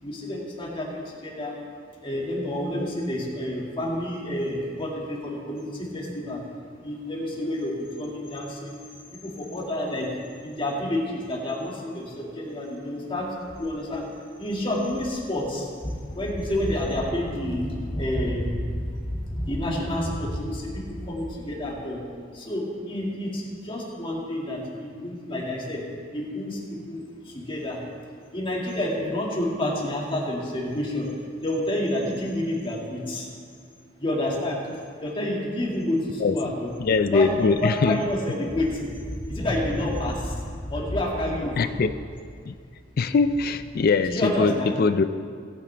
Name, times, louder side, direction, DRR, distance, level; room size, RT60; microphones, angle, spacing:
voice 1, 0.0-1.6 2.0-6.4 6.8-8.8 9.2-10.1 10.4-14.1 14.4-22.0 22.3-25.8 26.1-27.8 28.3-31.1 31.4-33.3 34.0-34.6 35.0-36.7 37.1-41.7 44.1-44.8, left 1 dB, 30° left, -3 dB, 2.1 m, -29 dB
voice 2, 36.8-38.0 41.6-41.9 42.5-42.6 43.0-45.0, left 4 dB, 50° left, 11 dB, 0.4 m, -22 dB
18.0 x 8.8 x 3.4 m, 2.1 s
head